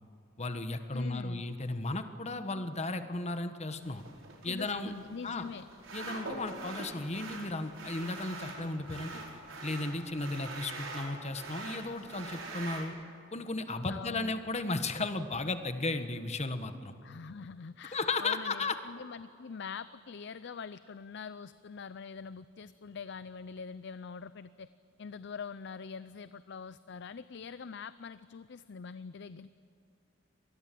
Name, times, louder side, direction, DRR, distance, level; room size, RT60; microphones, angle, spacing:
voice 1, 0.4-4.0 4.4-4.9 5.2-5.4 5.9-9.2 9.6-12.9 13.3-16.9 17.9-18.8, left 2 dB, 35° left, 9 dB, 1.4 m, -35 dB
voice 2, 0.9-1.4 4.4-5.7 13.9-14.3 17.0-24.7 25.0-29.6, left 5 dB, 60° left, 15 dB, 0.5 m, -44 dB
sound 1, 3.8-12.9, right 3 dB, 90° right, 4.9 m, -44 dB
25.5 x 20.0 x 7.7 m, 2.7 s
head